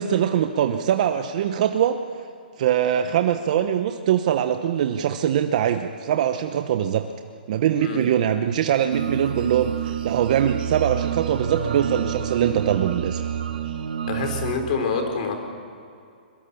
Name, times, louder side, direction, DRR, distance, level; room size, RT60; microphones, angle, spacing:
voice 1, 0.0-2.0 2.6-7.1 7.5-13.2, right 9 dB, 45° right, 7 dB, 1.0 m, -22 dB
sound 1, 8.9-14.5, right 9 dB, 70° right, 2.1 m, -28 dB
voice 2, 14.1-15.3, left 4 dB, 50° left, 5 dB, 4.8 m, -26 dB
23.0 x 22.0 x 7.1 m, 2.5 s
hypercardioid pair, 155°, 5 cm